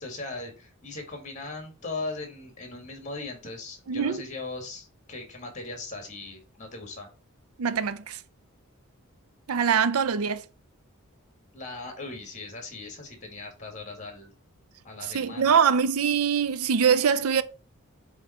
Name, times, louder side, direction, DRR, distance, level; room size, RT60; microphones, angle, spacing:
voice 1, 0.0-7.1 11.5-14.3 14.8-15.5, left 3 dB, 35° left, 1.9 m, -39 dB
voice 2, 3.9-4.2 7.6-8.2 9.5-10.4 15.0-17.4, right 7 dB, 85° right, 0.5 m, -23 dB
7.3 x 3.2 x 4.3 m
head